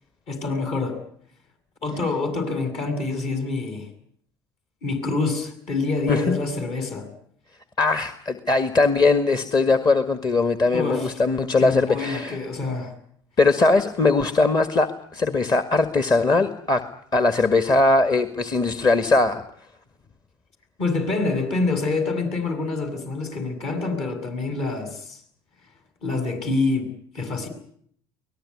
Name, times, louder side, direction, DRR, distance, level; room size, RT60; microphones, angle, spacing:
voice 1, 0.3-1.0 1.8-3.9 4.8-7.1 10.7-11.1 11.6-12.9 20.8-25.2 26.0-27.5, left 3 dB, 55° left, 7 dB, 7.6 m, -26 dB
voice 2, 6.1-6.4 7.8-12.4 13.4-16.8 17.1-19.4, left 3 dB, 35° left, 10 dB, 1.8 m, -20 dB
23.5 x 19.0 x 9.9 m, 0.65 s
hypercardioid pair, 70°, 13 cm